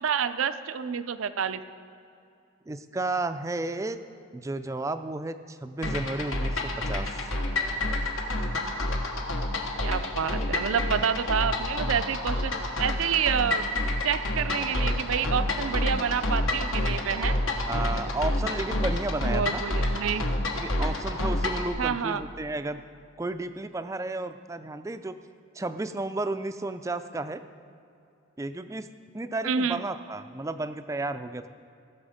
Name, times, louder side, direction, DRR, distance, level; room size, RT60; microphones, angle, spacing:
voice 1, 0.0-1.6 9.8-12.5 12.8-13.7 14.0-17.4 19.3-20.3 21.8-22.2 29.4-29.8, right 7 dB, 80° right, 12 dB, 0.5 m, -28 dB
voice 2, 2.7-4.0 4.3-7.2 17.7-19.6 20.5-22.8 23.2-25.1 25.5-27.4 28.4-28.9 29.1-31.5, right 2 dB, 15° right, 10 dB, 0.3 m, -32 dB
sound 1, 5.8-21.7, left 1 dB, 75° left, 1.3 m, -28 dB
16.5 x 7.0 x 5.0 m, 2.5 s
head